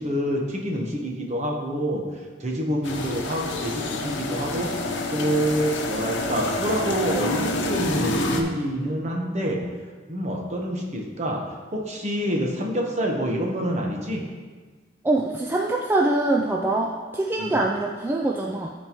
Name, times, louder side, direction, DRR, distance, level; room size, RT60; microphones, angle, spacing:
voice 1, 0.0-2.0 2.4-4.7 5.1-9.6 10.1-11.4 11.7-14.2 17.4-17.6, equal, 35° right, 0 dB, 1.1 m, -27 dB
sound 1, 2.8-8.4, left 2 dB, 75° left, 0.8 m, -28 dB
voice 2, 15.0-18.7, right 2 dB, 10° right, -1 dB, 0.3 m, -24 dB
12.5 x 4.4 x 3.0 m, 1.4 s
head